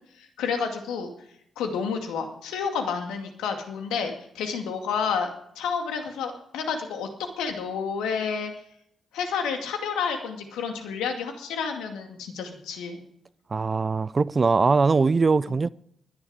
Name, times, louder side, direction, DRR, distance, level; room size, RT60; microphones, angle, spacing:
voice 1, 0.2-1.1 1.6-5.3 5.6-7.1 7.4-8.5 9.1-13.0 15.5-15.6, left 6 dB, 80° left, 2.2 m, -30 dB
voice 2, 13.5-15.7, right 4 dB, 40° right, 0.5 m, -21 dB
21.0 x 10.5 x 4.9 m
hypercardioid pair, 40°, 0 cm